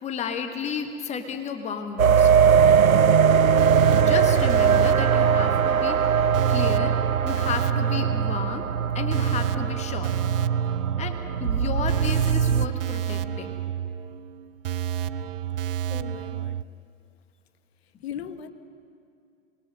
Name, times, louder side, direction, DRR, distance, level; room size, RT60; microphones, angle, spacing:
voice 1, 0.0-2.3 4.0-8.7 8.9-10.1 11.0-13.6, left 6 dB, 15° left, 7 dB, 1.6 m, -33 dB
sound 1, 2.0-12.7, right 7 dB, 85° right, 0.6 m, -21 dB
sound 2, 2.6-16.6, right 10 dB, 45° right, 0.6 m, -31 dB
voice 2, 15.6-16.6 18.0-18.5, left 9 dB, 50° left, 11 dB, 1.5 m, -38 dB
28.0 x 21.0 x 6.7 m, 2.5 s
figure-of-eight pair, 105°, 40 cm